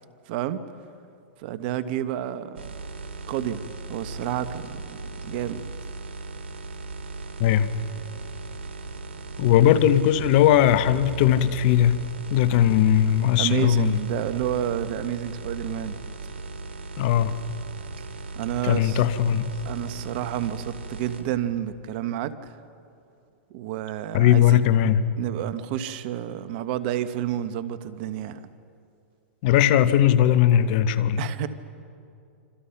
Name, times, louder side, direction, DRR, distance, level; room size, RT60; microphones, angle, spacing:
voice 1, 0.3-0.6 1.4-2.8 3.3-5.6 13.4-16.0 18.3-19.0 19.6-22.5 23.5-28.4 31.2-31.5, right 11 dB, 55° right, 1.3 m, -30 dB
sound 1, 2.6-21.2, right 3 dB, 85° right, 2.6 m, -37 dB
voice 2, 9.4-12.0 12.3-14.0 17.0-17.3 18.6-19.5 24.1-25.0 29.4-31.3, left 10 dB, 55° left, 1.1 m, -19 dB
27.5 x 26.0 x 5.9 m
hypercardioid pair, 120°, 6 cm